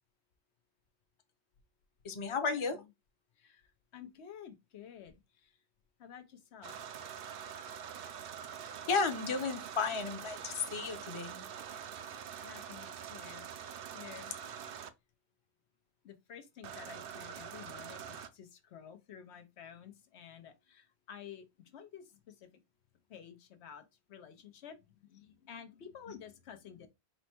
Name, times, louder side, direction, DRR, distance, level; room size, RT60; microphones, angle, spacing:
voice 1, 2.0-2.8 8.9-11.4 26.1-26.2, left 4 dB, 35° left, 0.6 m, -33 dB
voice 2, 3.4-5.6 6.0-6.8 12.4-14.3 16.0-22.5 23.1-26.9, left 8 dB, 90° left, 1.0 m, -52 dB
sound 1, 6.6-14.9 16.6-18.3, right 8 dB, 65° right, 0.7 m, -45 dB
4.3 x 2.1 x 4.3 m
omnidirectional pair, 1.1 m